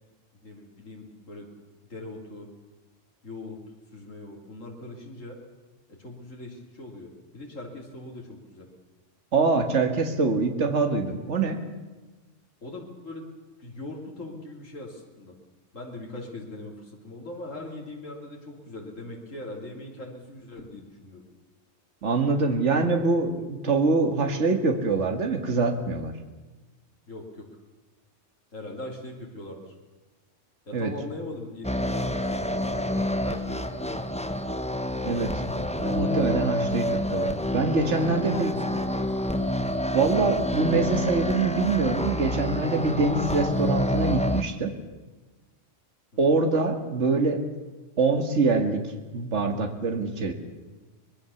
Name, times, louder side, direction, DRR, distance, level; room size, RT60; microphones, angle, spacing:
voice 1, 0.4-1.5 1.9-2.5 3.2-3.6 3.9-5.4 6.0-8.7 12.6-13.3 13.6-15.4 15.7-21.2 27.1-27.5 28.5-29.7 30.7-34.0 38.0-39.2, left 2 dB, 85° left, -1 dB, 3.6 m, -40 dB
voice 2, 9.3-11.6 22.0-26.1 30.7-30.9 35.0-38.5 39.9-44.7 46.2-47.5 48.0-50.3, right 3 dB, 65° right, 5 dB, 2.1 m, -24 dB
sound 1, 31.6-44.4, equal, 5° left, 1.0 m, -28 dB
24.0 x 21.0 x 7.1 m, 1.2 s
omnidirectional pair, 1.3 m